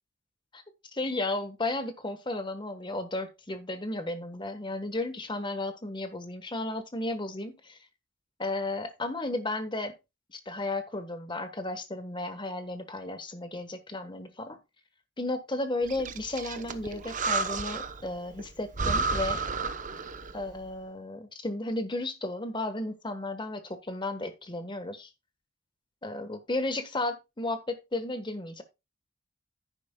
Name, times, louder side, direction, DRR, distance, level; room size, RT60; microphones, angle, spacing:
voice 1, 0.9-7.8 8.4-9.9 10.3-14.6 15.2-19.4 20.3-25.1 26.0-28.6, left 2 dB, 25° left, 1.3 m, -34 dB
Breathing, 15.9-18.1 18.4-18.5 18.7-20.4, right 4 dB, 40° right, 0.8 m, -31 dB
10.5 x 10.0 x 2.3 m
head